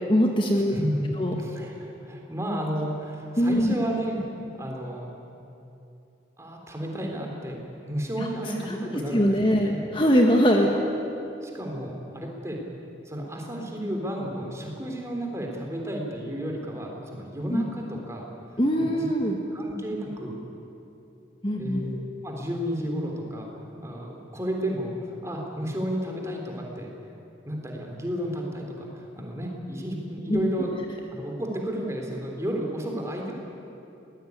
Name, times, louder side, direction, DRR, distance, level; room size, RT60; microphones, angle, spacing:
voice 1, 0.1-0.7 1.2-1.3 3.4-3.7 8.7-10.7 17.5-17.6 18.6-19.4 21.4-21.8 30.3-30.5, equal, 25° left, 1 dB, 1.7 m, -22 dB
voice 2, 0.7-1.1 1.4-4.2 4.5-5.1 6.4-9.8 11.4-12.6 13.1-18.2 18.8-19.1 19.5-20.3 21.6-23.5 23.8-24.9 25.2-26.9 27.5-30.7 31.1-33.3, equal, 15° right, 0 dB, 3.6 m, -32 dB
23.0 x 19.0 x 9.7 m, 2.8 s
head